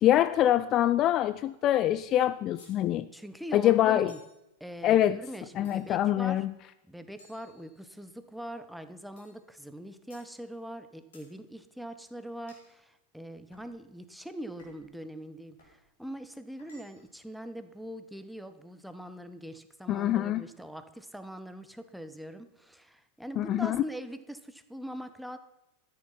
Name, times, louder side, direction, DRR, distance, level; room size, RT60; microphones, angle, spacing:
voice 1, 0.0-3.1 3.5-4.1 4.8-5.2 5.6-6.5 19.9-20.4 23.4-23.8, left 12 dB, 35° left, 14 dB, 0.4 m, -24 dB
sound 1, 2.6-2.8 4.1-4.4 5.6-6.1 7.2-8.1 9.2-9.4 10.1-10.3 11.1-11.3 12.5-12.7 13.5-13.7 14.6-14.9 15.6-15.8 16.6-17.2, left 2 dB, 65° left, 4.3 m, -59 dB
voice 2, 3.1-4.2 4.6-6.4 6.9-25.4, equal, ahead, 10 dB, 1.0 m, -42 dB
13.5 x 9.9 x 5.6 m, 0.90 s
figure-of-eight pair, 90°, 0 cm